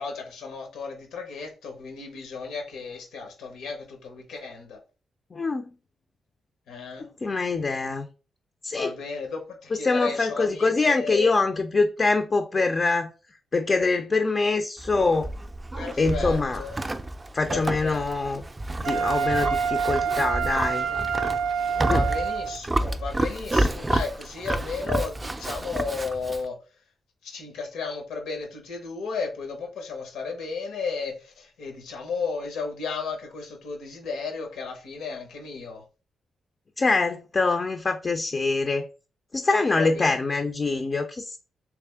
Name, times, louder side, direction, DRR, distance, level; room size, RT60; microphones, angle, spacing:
voice 1, 0.0-4.8 6.7-7.1 8.7-11.3 15.7-16.7 17.5-18.1 21.8-26.6 27.2-35.8 39.8-40.2, left 4 dB, 90° left, 1.1 m, -34 dB
voice 2, 5.3-5.7 7.0-8.1 8.6-8.9 9.8-13.1 13.5-15.3 16.0-16.6 17.3-18.4 18.8-20.9 21.8-22.0 36.8-38.9 39.3-41.4, left 3 dB, 40° left, 0.4 m, -24 dB
Livestock farm animals working animals, 14.8-26.5, right 1 dB, 20° right, 0.4 m, -30 dB
Wind instrument woodwind instrument, 18.8-22.6, right 6 dB, 85° right, 0.4 m, -27 dB
3.4 x 3.1 x 3.4 m
cardioid pair, 80°, 0 cm